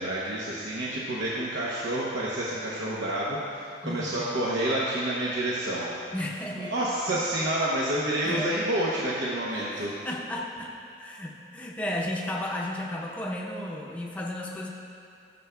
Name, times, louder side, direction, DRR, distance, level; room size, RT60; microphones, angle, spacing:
voice 1, 0.0-5.9 6.6-9.9, right 1 dB, 90° right, -6 dB, 0.9 m, -29 dB
voice 2, 3.8-4.3 6.1-6.7 8.2-8.5 9.5-14.7, left 1 dB, 10° left, -3 dB, 0.6 m, -34 dB
13.5 x 7.0 x 2.2 m, 2.5 s
head